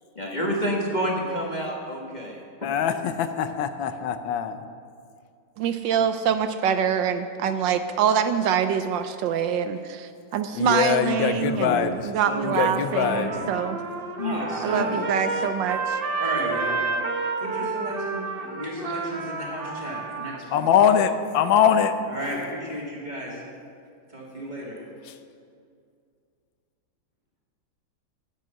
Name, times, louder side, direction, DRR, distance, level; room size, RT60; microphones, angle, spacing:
voice 1, 0.2-2.8 11.1-12.0 12.2-12.7 13.0-13.7 14.2-15.0, equal, 25° left, -2 dB, 1.3 m, -30 dB
voice 2, 2.6-4.6 10.5-12.1 12.4-13.3 20.5-22.0, left 8 dB, 80° left, 10 dB, 1.4 m, -22 dB
voice 3, 5.6-13.8 14.6-16.0, right 8 dB, 75° right, 10 dB, 1.2 m, -25 dB
Trumpet, 12.7-20.4, right 4 dB, 40° right, 0.9 m, -30 dB
voice 4, 12.9-13.7 14.2-15.7 16.2-16.9 17.4-20.6 22.1-23.4 24.1-24.8, equal, 20° right, -4 dB, 2.6 m, -35 dB
12.0 x 8.6 x 6.4 m, 2.3 s
omnidirectional pair, 2.1 m